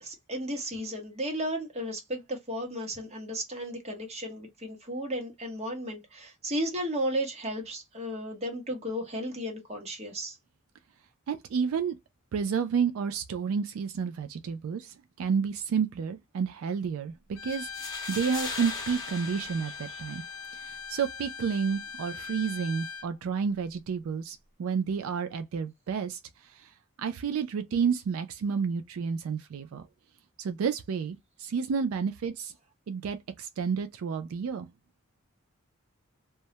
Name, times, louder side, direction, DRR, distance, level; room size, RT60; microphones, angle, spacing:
voice 1, 0.0-10.4 19.9-20.0, equal, 30° right, 0.8 m, -34 dB
voice 2, 11.3-12.0 12.3-17.7 18.1-20.2 20.5-26.7 27.0-29.8 30.4-32.5 32.9-34.7, right 6 dB, 80° right, 0.3 m, -30 dB
Bowed string instrument, 17.3-23.1, left 5 dB, 90° left, 0.5 m, -41 dB
sound 1, 17.5-20.5, left 3 dB, 20° left, 0.8 m, -39 dB
2.2 x 2.0 x 2.7 m
head